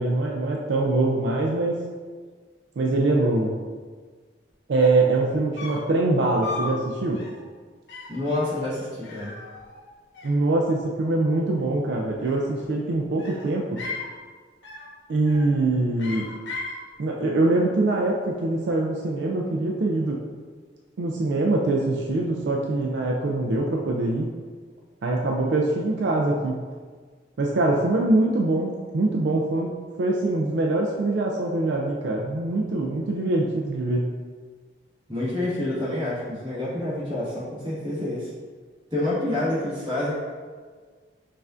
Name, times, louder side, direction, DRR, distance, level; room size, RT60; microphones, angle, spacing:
voice 1, 0.0-1.8 2.8-3.6 4.7-7.2 10.2-13.7 15.1-16.3 17.0-20.2 21.0-24.3 25.0-26.6 27.4-34.1, right 2 dB, 75° right, -1 dB, 0.4 m, -23 dB
sound 1, 4.5-4.6 4.8-5.1 5.6-5.9 6.4-6.8 7.1-7.4 7.9-8.2 9.0-9.9 10.1-10.9 12.1-12.7 13.2-14.1 14.6-14.9 15.2-15.6 16.0-16.8, left 3 dB, 80° left, 0.7 m, -37 dB
voice 2, 8.1-9.4 35.1-38.3 38.9-40.1, left 1 dB, 25° right, -9 dB, 1.4 m, -28 dB
5.4 x 2.5 x 2.4 m, 1.5 s
head